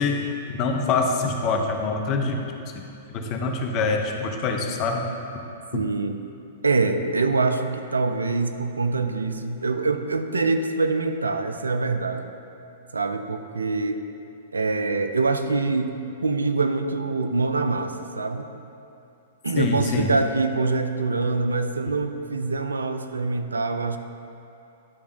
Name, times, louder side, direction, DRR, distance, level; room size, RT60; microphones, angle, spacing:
voice 1, 0.0-2.4 3.1-5.1 19.6-20.1, left 4 dB, 40° left, 3 dB, 0.8 m, -25 dB
voice 2, 5.7-6.2 6.6-12.3 12.9-14.0 14.5-16.0 16.2-18.5 19.4-24.0, right 3 dB, 90° right, 8 dB, 0.4 m, -24 dB
10.0 x 3.5 x 5.0 m, 2.7 s
hypercardioid pair, 115°, 0 cm